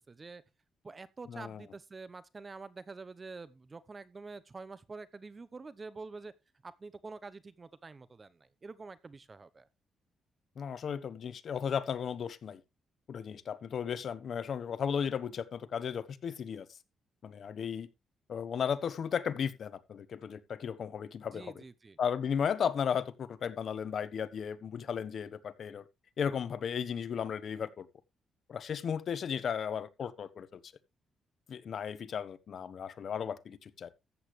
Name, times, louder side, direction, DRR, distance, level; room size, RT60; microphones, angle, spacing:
voice 1, 0.1-0.4 0.8-6.3 6.6-9.7 21.3-22.0, right 4 dB, 30° right, 0.8 m, -47 dB
voice 2, 1.3-1.6 10.6-12.6 13.1-16.7 17.2-17.9 18.3-21.6 22.0-25.8 26.2-27.9 28.5-30.7 31.5-33.9, left 7 dB, 60° left, 1.0 m, -35 dB
14.0 x 8.4 x 3.2 m
cardioid pair, 90°, 0 cm